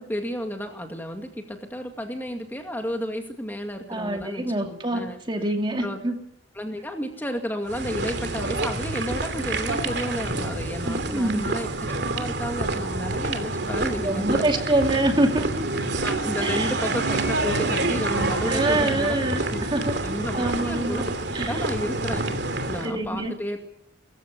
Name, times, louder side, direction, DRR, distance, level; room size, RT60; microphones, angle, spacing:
voice 1, 0.0-5.2 5.8-6.0 6.6-11.7 12.1-14.4 16.0-19.2 19.5-19.7 20.0-21.0 21.4-22.4 22.7-23.6, equal, 10° left, 4 dB, 2.3 m, -32 dB
voice 2, 3.9-6.2 10.8-11.5 14.0-15.7 16.4-16.7 18.5-20.0 20.3-21.1 21.3-21.7 22.8-23.3, right 1 dB, 25° right, 4 dB, 2.5 m, -25 dB
sound 1, 7.7-22.9, right 2 dB, 65° right, 2.7 m, -27 dB
23.0 x 15.0 x 9.7 m, 0.72 s
head